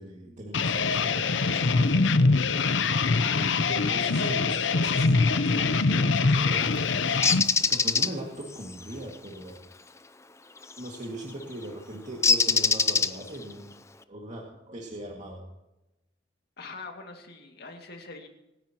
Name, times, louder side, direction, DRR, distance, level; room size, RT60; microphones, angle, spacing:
voice 1, 0.0-2.3 3.4-6.8 7.6-9.6 10.8-13.7 14.1-15.4, right 1 dB, 40° right, -2 dB, 2.2 m, -40 dB
sound 1, 0.5-7.4, left 4 dB, 75° left, 0.7 m, -23 dB
Bird, 7.2-8.1 10.7-10.9 12.2-13.4, left 4 dB, 15° left, 0.5 m, -22 dB
voice 2, 16.6-18.3, left 3 dB, 60° left, 3 dB, 2.3 m, -43 dB
26.0 x 10.5 x 3.0 m, 0.95 s
head